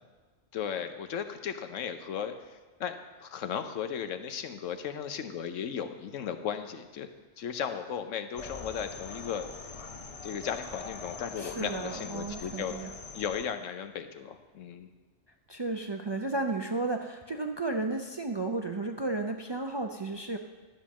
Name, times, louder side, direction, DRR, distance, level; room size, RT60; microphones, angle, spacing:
voice 1, 0.5-2.3 2.8-7.1 7.4-9.4 10.2-12.8 13.1-14.9, left 8 dB, 85° left, 8 dB, 1.1 m, -36 dB
sound 1, 8.4-13.4, left 4 dB, 35° left, 0.6 m, -43 dB
voice 2, 11.4-12.9 15.5-20.4, right 3 dB, 45° right, 4 dB, 0.3 m, -33 dB
12.0 x 5.3 x 7.2 m, 1.3 s
omnidirectional pair, 1.3 m